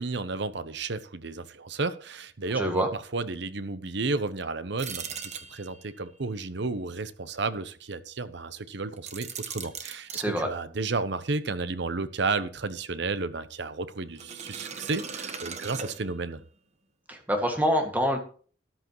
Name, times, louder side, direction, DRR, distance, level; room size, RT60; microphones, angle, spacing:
voice 1, 0.0-16.4, right 3 dB, 65° right, 13 dB, 0.9 m, -32 dB
voice 2, 2.5-2.9 10.1-10.5 17.1-18.2, equal, 10° right, 3 dB, 2.0 m, -26 dB
sound 1, 4.8-6.0 9.0-10.3 14.2-16.4, right 6 dB, 35° right, 1.2 m, -39 dB
13.5 x 11.5 x 3.1 m, 0.42 s
head